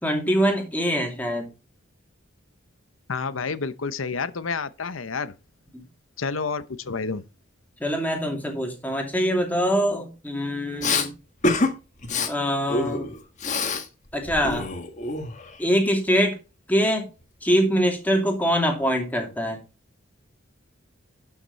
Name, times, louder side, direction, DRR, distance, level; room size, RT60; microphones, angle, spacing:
voice 1, 0.0-1.5 5.7-5.8 7.8-11.1 12.3-13.1 14.1-14.7 15.6-16.3 16.7-17.1 17.4-19.6, equal, 10° left, 2.7 m, -23 dB
voice 2, 3.1-5.3 6.2-7.2, left 4 dB, 80° left, 0.8 m, -29 dB
Respiratory sounds, 10.8-11.1 11.4-11.7 12.0-12.3 12.7-13.9 14.1-15.6, left 3 dB, 35° left, 1.6 m, -26 dB
12.0 x 6.0 x 4.1 m
head